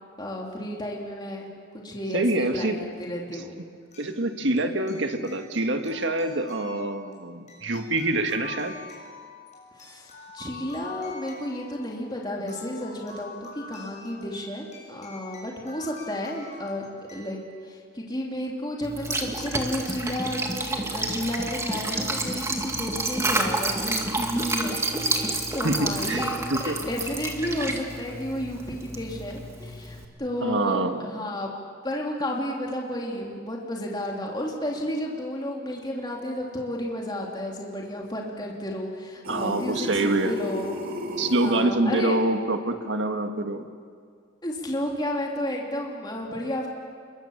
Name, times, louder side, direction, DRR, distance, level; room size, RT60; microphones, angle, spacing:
voice 1, 0.2-1.5 1.7-3.6 9.8-16.8 17.1-24.8 25.1-31.5 31.8-40.8 41.4-42.2 44.4-46.7, left 1 dB, 20° left, -1 dB, 3.0 m, -32 dB
voice 2, 2.1-2.8 4.0-8.7 25.6-26.8 30.4-31.0 39.3-40.3 41.2-43.6, right 2 dB, 65° right, 6 dB, 1.8 m, -26 dB
sound 1, 2.5-2.6 3.9-17.3, left 3 dB, 35° left, 7.2 m, -46 dB
Liquid, 18.8-30.0, right 2 dB, 15° right, 2.2 m, -29 dB
sound 2, 39.2-41.6, equal, 50° right, 2.8 m, -33 dB
27.5 x 23.0 x 7.2 m, 2.1 s
head